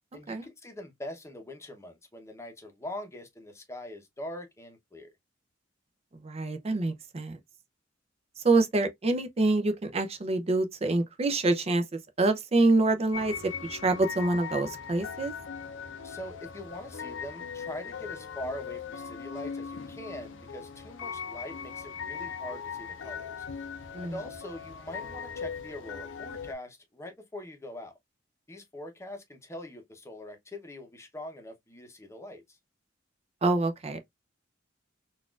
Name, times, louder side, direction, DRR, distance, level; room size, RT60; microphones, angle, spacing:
voice 1, 0.1-5.1 16.0-23.4 24.0-27.9 28.5-32.4, left 1 dB, 15° left, 0.8 m, -42 dB
voice 2, 6.2-7.4 8.4-11.8 12.2-15.3 23.9-24.1 33.4-34.0, right 2 dB, 30° right, 0.5 m, -26 dB
sound 1, 13.1-26.5, left 6 dB, 70° left, 0.5 m, -39 dB
4.0 x 2.4 x 2.3 m
head